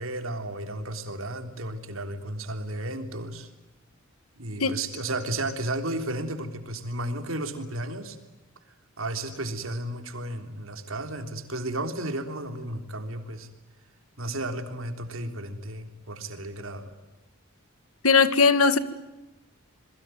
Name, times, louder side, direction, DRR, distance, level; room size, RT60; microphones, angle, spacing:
voice 1, 0.0-3.5 4.4-8.2 9.0-13.5 14.2-16.9, right 1 dB, 70° right, 7 dB, 3.5 m, -33 dB
voice 2, 18.0-18.8, left 4 dB, 90° left, 13 dB, 1.9 m, -19 dB
27.5 x 22.5 x 9.3 m, 1.0 s
head